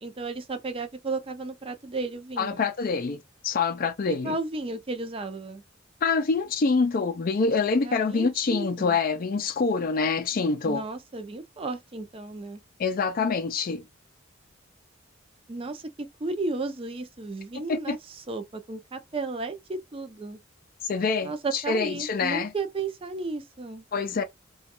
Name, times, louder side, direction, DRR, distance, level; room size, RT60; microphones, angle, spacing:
voice 1, 0.0-2.6 4.1-5.6 7.8-9.0 10.6-12.6 15.5-18.0 18.3-20.4 21.2-23.8, right 3 dB, 30° right, 0.5 m, -34 dB
voice 2, 2.4-4.4 6.0-10.8 12.8-13.8 17.7-18.0 20.8-22.5 23.9-24.2, left 4 dB, 45° left, 0.4 m, -26 dB
3.0 x 2.3 x 2.9 m
head